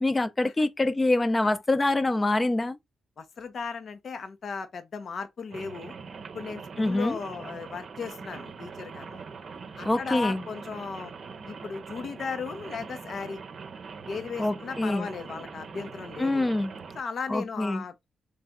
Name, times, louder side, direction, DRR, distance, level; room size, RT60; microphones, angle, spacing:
voice 1, 0.0-2.8 6.8-7.2 9.8-10.4 14.4-15.1 16.2-16.7 17.3-17.8, left 2 dB, 25° left, 0.7 m, -25 dB
voice 2, 3.2-5.9 6.3-9.2 9.7-11.1 11.5-13.4 14.1-16.5 16.9-18.0, left 5 dB, 60° left, 0.7 m, -36 dB
Rain, 5.5-17.0, right 5 dB, 60° right, 0.7 m, -42 dB
3.4 x 3.3 x 3.7 m
supercardioid pair, 50°, 0 cm